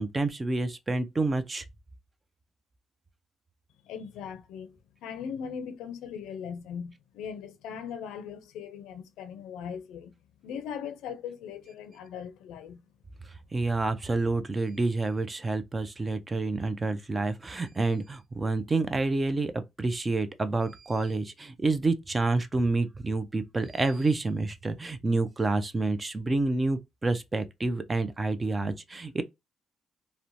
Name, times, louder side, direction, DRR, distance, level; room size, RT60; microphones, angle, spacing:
voice 1, 0.0-1.6 13.5-29.2, right 3 dB, 25° right, 0.4 m, -28 dB
voice 2, 3.8-10.1 10.4-12.8, left 7 dB, 90° left, 0.4 m, -39 dB
3.0 x 2.0 x 2.5 m
cardioid pair, 90°, 0 cm